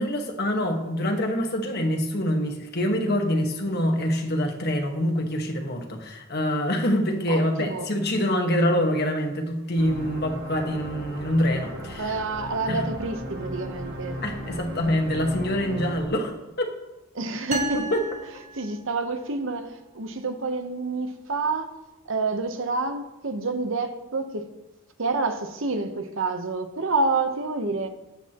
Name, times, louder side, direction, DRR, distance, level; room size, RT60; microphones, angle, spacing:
voice 1, 0.0-12.1 12.7-12.9 14.2-16.7 17.7-18.0, equal, 45° left, 1.4 m, -25 dB
voice 2, 7.3-7.9 12.0-14.2 17.1-17.9 18.5-21.7 22.1-24.5 25.0-27.9, right 3 dB, 60° right, 0.9 m, -28 dB
sound 1, 9.8-16.1, equal, 75° right, 3.0 m, -36 dB
sound 2, 17.5-19.3, right 3 dB, 35° right, 0.9 m, -33 dB
13.0 x 9.5 x 3.0 m
head